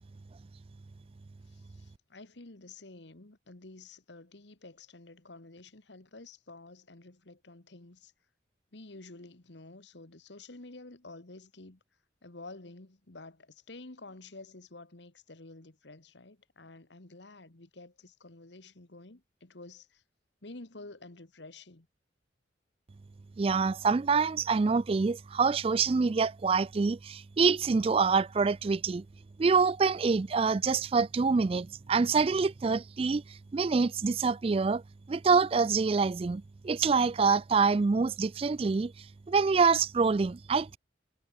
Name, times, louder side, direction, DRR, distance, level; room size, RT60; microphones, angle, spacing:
voice 1, 1.4-8.1 8.7-11.8 12.2-20.0 20.4-21.9, left 2 dB, 70° left, 1.7 m, -50 dB
voice 2, 23.4-29.0 29.4-34.8 35.1-38.9 39.3-40.8, right 4 dB, 30° right, 0.3 m, -26 dB
head